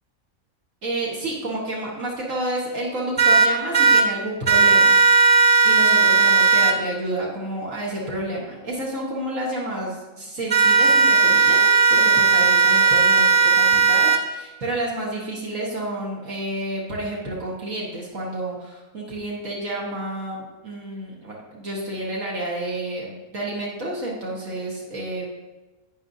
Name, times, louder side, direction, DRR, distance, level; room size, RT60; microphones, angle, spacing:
voice 1, 0.8-4.9 5.6-25.2, right 1 dB, 75° right, -4 dB, 1.9 m, -30 dB
sound 1, 3.2-4.0 4.5-6.7 10.5-14.2, right 5 dB, 35° right, 0.7 m, -16 dB
11.5 x 8.5 x 2.7 m, 1.2 s
omnidirectional pair, 1.4 m